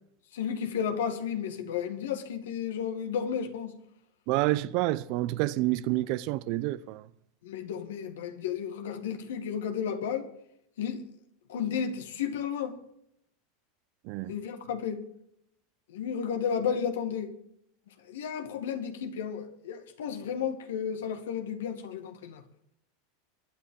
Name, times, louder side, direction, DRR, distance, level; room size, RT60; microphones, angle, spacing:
voice 1, 0.3-3.8 7.4-10.3 10.8-11.0 11.5-12.8 14.3-15.0 15.9-17.3 17.9-22.4, left 7 dB, 85° left, 2.1 m, -33 dB
voice 2, 4.3-7.1 14.0-14.3, right 17 dB, 60° right, 0.7 m, -28 dB
23.0 x 9.9 x 3.9 m
hypercardioid pair, 110°, 0 cm